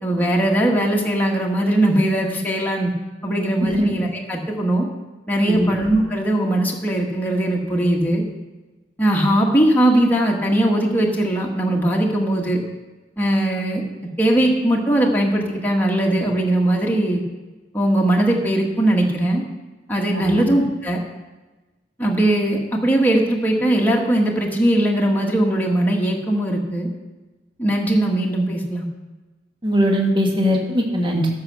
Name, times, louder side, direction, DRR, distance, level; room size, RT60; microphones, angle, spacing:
voice 1, 0.0-2.9 3.2-4.9 5.3-8.2 9.0-12.6 13.2-13.8 14.2-17.2 17.7-19.4 19.9-21.0 22.0-26.9 27.6-28.9, right 1 dB, 10° left, -2 dB, 1.4 m, -19 dB
voice 2, 29.6-31.3, equal, 25° right, 0 dB, 1.6 m, -20 dB
13.5 x 5.7 x 6.3 m, 1.2 s
head